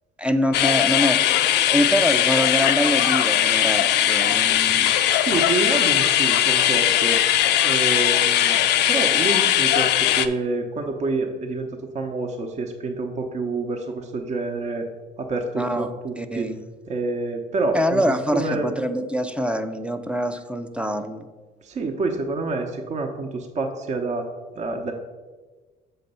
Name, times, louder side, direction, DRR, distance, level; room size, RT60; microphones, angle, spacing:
voice 1, 0.2-4.9 15.6-15.9 16.2-16.6 17.7-21.3, equal, 5° right, 8 dB, 0.4 m, -25 dB
sound 1, 0.5-10.3, left 12 dB, 80° left, 0.4 m, -19 dB
voice 2, 5.1-7.3 7.6-8.6 8.9-11.7 11.9-14.9 15.2-16.5 16.9-18.0 18.3-18.7 21.6-24.3 24.5-24.9, right 3 dB, 45° right, 3 dB, 0.8 m, -27 dB
6.8 x 4.1 x 5.4 m, 1.3 s
cardioid pair, 110°, 17 cm